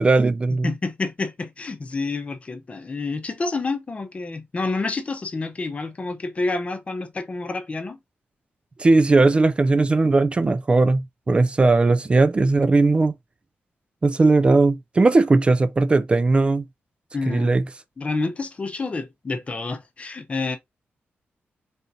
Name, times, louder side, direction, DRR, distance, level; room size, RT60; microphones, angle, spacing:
voice 1, 0.0-0.7 8.8-13.1 14.0-16.7 17.3-17.7, right 3 dB, 25° right, 0.3 m, -18 dB
voice 2, 0.6-8.0 17.1-17.6 18.0-20.6, left 3 dB, 30° left, 0.7 m, -28 dB
4.0 x 3.5 x 2.6 m
wide cardioid pair, 125°, 4 cm